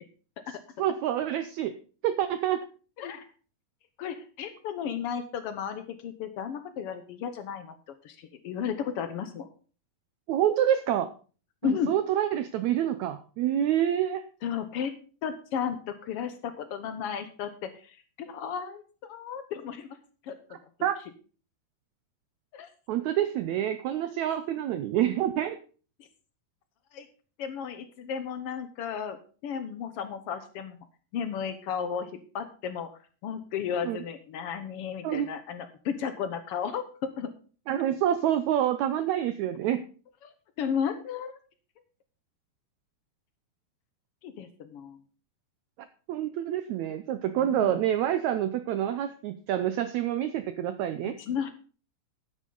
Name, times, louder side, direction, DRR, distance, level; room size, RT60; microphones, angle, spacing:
voice 1, 0.8-1.7 2.0-2.6 10.3-11.1 11.6-14.2 20.8-21.0 22.9-25.6 33.8-34.0 35.0-35.3 37.7-39.8 46.1-51.2, right 11 dB, 80° right, 11 dB, 1.6 m, -27 dB
voice 2, 4.0-7.7 8.0-9.5 11.6-11.9 14.4-14.9 15.2-20.0 20.2-20.6 22.5-22.7 24.2-24.4 26.9-27.1 27.4-29.2 29.4-30.8 31.1-32.9 33.2-37.3 40.2-41.4 44.2-45.0 47.4-47.8 51.0-51.5, left 7 dB, 85° left, 9 dB, 1.3 m, -34 dB
13.0 x 10.0 x 3.9 m, 0.39 s
omnidirectional pair, 4.0 m